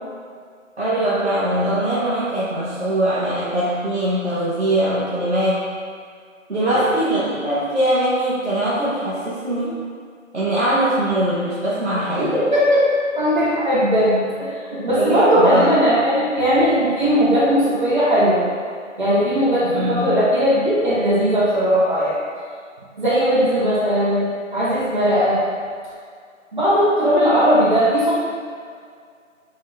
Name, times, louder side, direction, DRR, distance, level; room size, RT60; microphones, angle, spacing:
voice 1, 0.8-5.7 6.5-9.8 10.3-12.4 14.9-15.7 19.6-20.2, right 1 dB, 55° right, -10 dB, 0.8 m, -21 dB
voice 2, 12.2-12.9 13.2-18.4 19.0-22.2 23.0-25.4 26.5-28.2, equal, 35° right, -11 dB, 1.2 m, -18 dB
5.9 x 2.1 x 2.5 m, 2.1 s
figure-of-eight pair, 175°, 40 cm